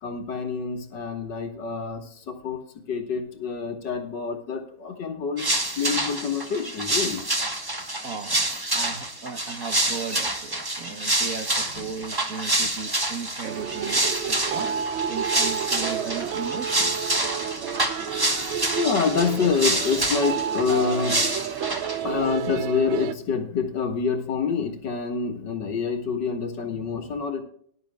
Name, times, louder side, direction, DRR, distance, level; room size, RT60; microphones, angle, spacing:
voice 1, 0.0-5.5 5.8-7.3 11.8-11.9 18.8-21.3 22.0-27.4, left 5 dB, 60° left, 5 dB, 2.0 m, -27 dB
sound 1, 5.4-22.0, right 1 dB, 15° right, 1.0 m, -27 dB
voice 2, 8.0-16.9, right 6 dB, 55° right, 6 dB, 1.0 m, -36 dB
sound 2, 13.4-23.1, right 8 dB, 90° right, 1.5 m, -30 dB
19.0 x 11.0 x 2.2 m, 0.64 s
omnidirectional pair, 2.2 m